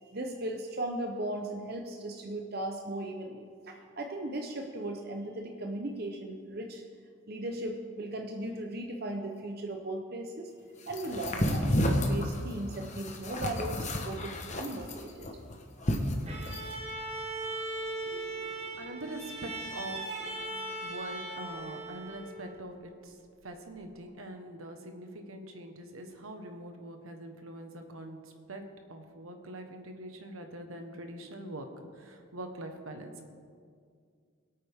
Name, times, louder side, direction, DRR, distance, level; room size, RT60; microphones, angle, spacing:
voice 1, 0.0-6.8 7.3-10.5 10.9-15.3, right 1 dB, 45° right, 2 dB, 0.8 m, -37 dB
sound 1, 10.9-16.7, equal, 35° left, 1.2 m, -31 dB
Bowed string instrument, 16.3-22.6, right 2 dB, 30° right, 1.6 m, -39 dB
voice 2, 18.0-20.5 20.8-23.2 23.4-28.6 28.9-31.7 31.9-33.2, right 1 dB, 80° right, 5 dB, 1.4 m, -43 dB
22.0 x 8.7 x 3.6 m, 2.1 s
head